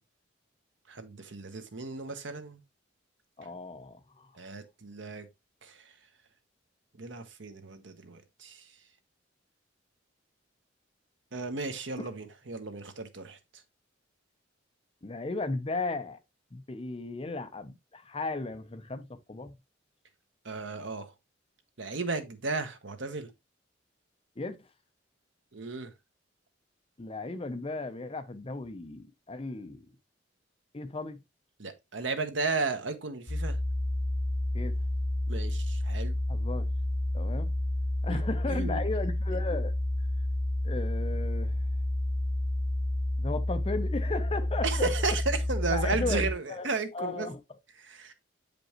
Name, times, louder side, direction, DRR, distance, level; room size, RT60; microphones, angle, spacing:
voice 1, 0.9-2.6 4.4-5.3 5.6-5.8 7.0-8.6 11.3-13.4 20.4-21.1 21.8-23.3 25.5-25.9 31.6-33.6 35.3-36.2 38.1-38.2 38.5-38.8 44.6-47.3 47.8-48.1, right 3 dB, 65° right, 1.1 m, -34 dB
voice 2, 3.4-4.3 12.0-12.1 15.0-16.2 16.5-19.5 24.4-24.6 27.0-29.9 30.7-31.2 34.5-34.8 36.3-36.7 37.1-37.5 38.0-39.7 40.6-41.6 43.2-44.9 45.7-46.7 46.9-47.4, left 3 dB, 30° left, 0.6 m, -35 dB
sound 1, 33.3-46.3, left 1 dB, 75° left, 1.2 m, -30 dB
7.7 x 5.2 x 2.9 m
head